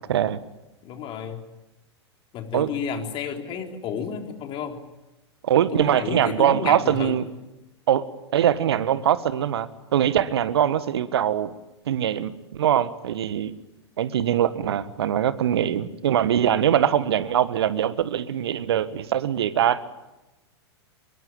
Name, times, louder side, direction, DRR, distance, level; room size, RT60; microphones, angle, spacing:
voice 1, 0.1-0.4 2.5-2.7 5.4-7.2 7.9-8.1 8.3-11.5 11.9-13.5 14.0-19.8, right 10 dB, 65° right, 14 dB, 1.5 m, -22 dB
voice 2, 0.8-1.4 2.3-4.8 5.6-7.2, left 7 dB, 35° left, 4 dB, 3.8 m, -32 dB
24.0 x 22.5 x 9.0 m, 1.0 s
figure-of-eight pair, 100°, 14 cm